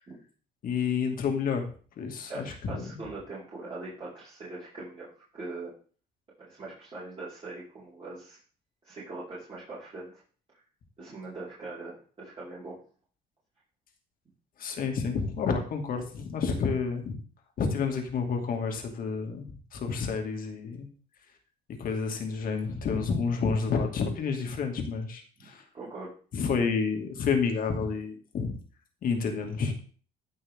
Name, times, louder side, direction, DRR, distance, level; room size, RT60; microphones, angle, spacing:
voice 1, 0.6-1.6 2.0-2.9 14.6-17.2 17.6-20.9 21.8-25.6 26.3-28.5 29.0-29.7, left 5 dB, 55° left, 4 dB, 2.4 m, -29 dB
voice 2, 2.3-5.7 6.4-8.4 8.8-10.1 11.0-12.8 25.4-25.5 25.7-26.1, right 3 dB, 35° right, -9 dB, 4.9 m, -41 dB
16.0 x 5.9 x 3.7 m, 0.41 s
cardioid pair, 110°, 17 cm